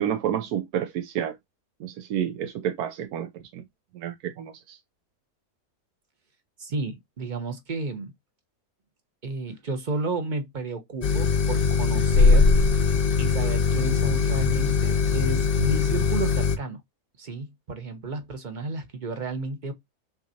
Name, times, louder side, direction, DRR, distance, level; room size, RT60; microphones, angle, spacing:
voice 1, 0.0-1.4 1.8-3.6 3.9-4.8, right 10 dB, 80° right, 1.2 m, -30 dB
voice 2, 6.6-8.1 9.2-12.5 13.2-16.8 17.2-19.7, right 3 dB, 35° right, 0.8 m, -32 dB
sound 1, 11.0-16.6, left 5 dB, 50° left, 0.7 m, -21 dB
5.9 x 3.1 x 2.7 m
omnidirectional pair, 1.7 m